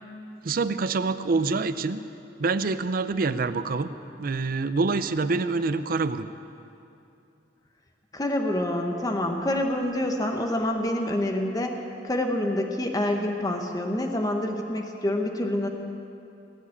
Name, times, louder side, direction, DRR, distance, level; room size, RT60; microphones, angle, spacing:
voice 1, 0.4-2.0 2.4-3.9 4.2-6.3, right 3 dB, 55° right, 12 dB, 0.5 m, -26 dB
voice 2, 8.1-11.7 12.0-15.7, left 1 dB, 20° left, 3 dB, 1.0 m, -27 dB
18.5 x 7.3 x 8.5 m, 2.8 s
head